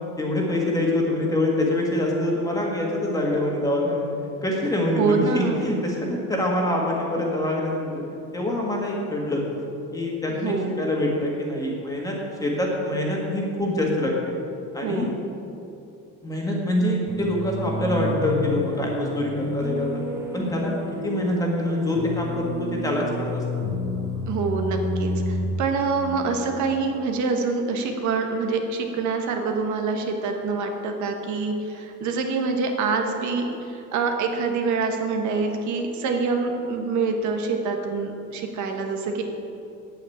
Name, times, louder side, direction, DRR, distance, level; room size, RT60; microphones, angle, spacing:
voice 1, 0.0-4.0 4.4-9.4 9.9-14.3 14.7-15.1 16.2-20.0 20.3-20.7 21.0-23.4, left 1 dB, 10° left, -2 dB, 1.7 m, -25 dB
voice 2, 5.0-5.6 10.4-10.8 14.8-15.1 24.3-39.2, right 4 dB, 60° right, 3 dB, 1.3 m, -26 dB
sound 1, 17.1-27.0, left 1 dB, 5° right, 1.4 m, -30 dB
8.9 x 8.8 x 8.4 m, 2.7 s
cardioid pair, 170°, 33 cm